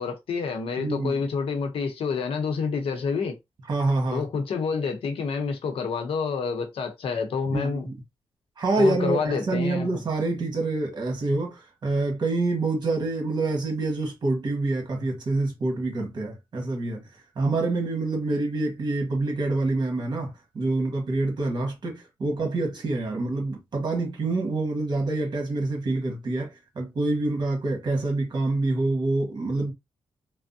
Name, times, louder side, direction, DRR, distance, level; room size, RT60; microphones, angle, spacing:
voice 1, 0.0-3.4 4.1-7.9 8.8-9.9, left 5 dB, 70° left, 0.8 m, -28 dB
voice 2, 0.8-1.2 3.7-4.3 7.5-7.9 8.6-17.0 17.3-29.7, right 2 dB, 45° right, 1.3 m, -26 dB
3.4 x 2.0 x 2.6 m
cardioid pair, 105°, 10 cm